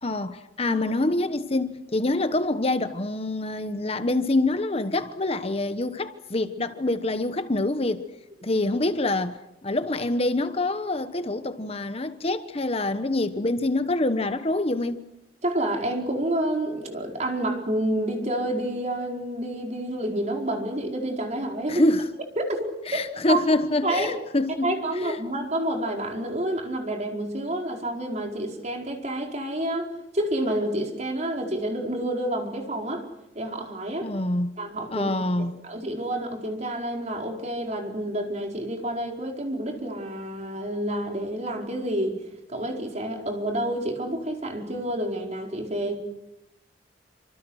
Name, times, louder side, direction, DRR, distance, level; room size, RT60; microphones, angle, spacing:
voice 1, 0.0-8.0 8.4-15.0 21.7-22.1 22.9-25.2 34.0-34.6 34.9-35.6, left 2 dB, 35° left, 1.1 m, -26 dB
voice 2, 15.4-21.8 22.4-22.7 23.3-23.4 23.8-24.2 24.6-33.1 33.3-34.1 34.6-35.1 35.4-42.2 42.5-46.0, right 1 dB, 40° right, 4.8 m, -29 dB
28.0 x 26.0 x 6.4 m
head